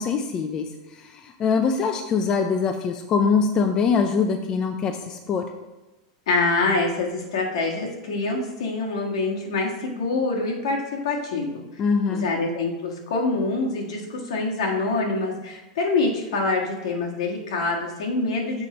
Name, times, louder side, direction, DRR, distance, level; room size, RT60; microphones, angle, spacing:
voice 1, 0.0-5.5 11.8-12.3, left 5 dB, 20° left, 5 dB, 0.4 m, -23 dB
voice 2, 6.3-11.6 12.1-18.7, left 3 dB, 70° left, -1 dB, 1.7 m, -25 dB
6.8 x 4.2 x 5.1 m, 1.0 s
supercardioid pair, 165°, 3 cm